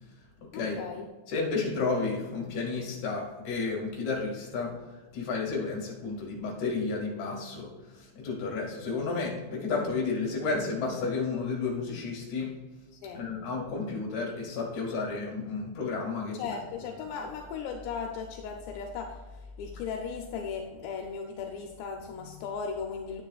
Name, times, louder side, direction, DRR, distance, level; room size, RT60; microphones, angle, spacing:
voice 1, 0.5-1.1 12.9-13.3 16.3-23.2, left 6 dB, 80° left, 3 dB, 2.8 m, -37 dB
voice 2, 1.3-4.7 5.1-7.7 8.1-12.5 13.1-16.4, left 4 dB, 50° left, -2 dB, 3.0 m, -31 dB
9.9 x 9.6 x 2.4 m, 1.2 s
omnidirectional pair, 5.2 m